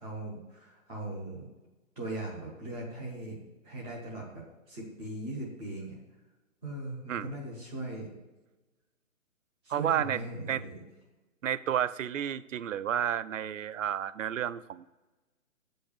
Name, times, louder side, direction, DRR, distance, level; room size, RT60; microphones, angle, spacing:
voice 1, 0.0-1.5 2.0-3.4 3.6-6.0 6.6-8.1 9.6-10.8, right 2 dB, 5° left, -15 dB, 0.5 m, -39 dB
voice 2, 9.7-10.2 10.5-10.6 11.4-15.0, right 10 dB, 65° right, 16 dB, 0.6 m, -31 dB
7.9 x 5.4 x 6.8 m, 1.1 s
hypercardioid pair, 160°, 41 cm